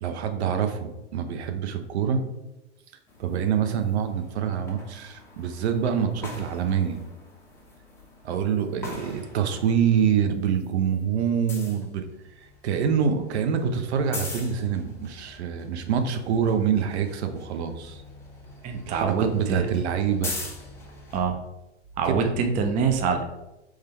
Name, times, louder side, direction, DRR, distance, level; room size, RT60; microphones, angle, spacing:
voice 1, 0.0-2.3 3.2-7.0 8.2-12.0 12.4-18.0 18.9-20.3 22.0-22.4, right 7 dB, 65° right, 7 dB, 0.7 m, -26 dB
sound 1, 3.1-10.1 10.4-21.2, left 2 dB, 5° left, 1.0 m, -43 dB
voice 2, 18.6-19.7 21.1-21.4 22.0-23.2, right 5 dB, 20° right, 5 dB, 0.5 m, -25 dB
3.7 x 3.2 x 4.3 m, 0.97 s
hypercardioid pair, 110°, 36 cm